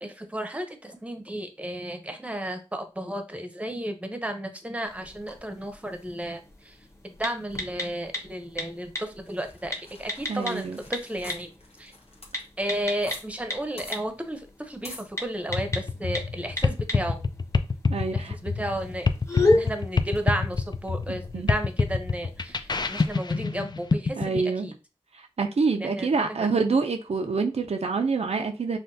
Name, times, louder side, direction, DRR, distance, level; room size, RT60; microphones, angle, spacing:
voice 1, 0.0-6.8 7.0-11.5 11.8-11.9 12.6-17.2 18.1-19.1 19.5-24.7 25.8-26.1 26.4-26.5, right 1 dB, 10° right, 0.7 m, -33 dB
sound 1, 4.9-23.1, left 2 dB, 25° left, 1.1 m, -34 dB
sound 2, 9.3-13.2 13.5-13.6 13.8-14.0 14.8-15.1, left 2 dB, 60° left, 1.1 m, -45 dB
voice 2, 10.3-10.8 17.9-18.3 19.3-19.6 21.3-21.5 24.2-24.7 25.1-28.8, right 4 dB, 65° right, 0.5 m, -26 dB
sound 3, 15.5-24.4, left 4 dB, 40° left, 0.4 m, -26 dB
5.6 x 2.2 x 2.7 m
wide cardioid pair, 50°, 12 cm